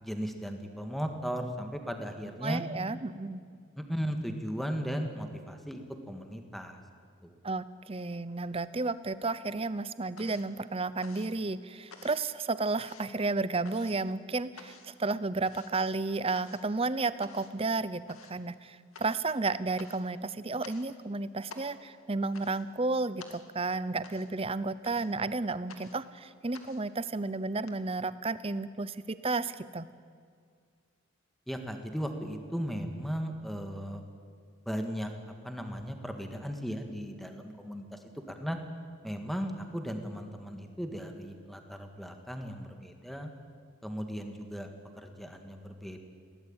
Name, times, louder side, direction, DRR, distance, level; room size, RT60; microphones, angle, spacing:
voice 1, 0.0-2.6 3.8-5.8 6.1-6.8 7.2-7.4 31.5-34.0 34.7-35.1 35.4-38.0 38.3-38.6 39.0-43.3 43.8-44.7 45.0-46.0, equal, ahead, 5 dB, 1.8 m, -36 dB
voice 2, 2.4-3.4 7.4-29.9, right 3 dB, 25° right, 15 dB, 0.7 m, -32 dB
sound 1, 8.4-9.2 9.5-27.7, left 4 dB, 75° left, 2.2 m, -53 dB
22.0 x 17.5 x 8.9 m, 2.1 s
head